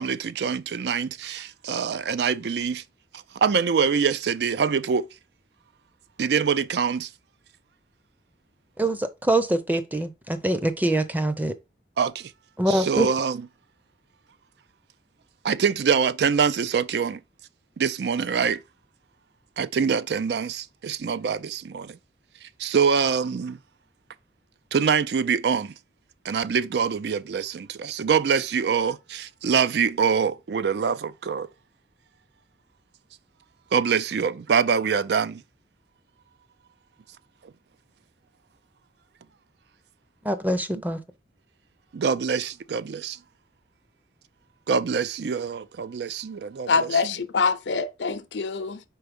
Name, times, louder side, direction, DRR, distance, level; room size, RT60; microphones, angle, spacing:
voice 1, 0.0-2.8 3.4-5.0 6.2-7.1 12.0-12.1 12.7-13.4 15.5-17.2 17.8-18.6 19.6-21.9 22.6-23.5 24.7-25.7 26.3-31.5 33.7-35.3 41.9-43.1 44.7-46.9, right 6 dB, 65° right, 0.4 m, -24 dB
voice 2, 8.8-11.5 12.6-13.1 40.2-41.0, right 1 dB, 10° right, 0.6 m, -24 dB
voice 3, 46.7-48.8, left 4 dB, 85° left, 0.7 m, -25 dB
4.6 x 4.3 x 5.2 m
head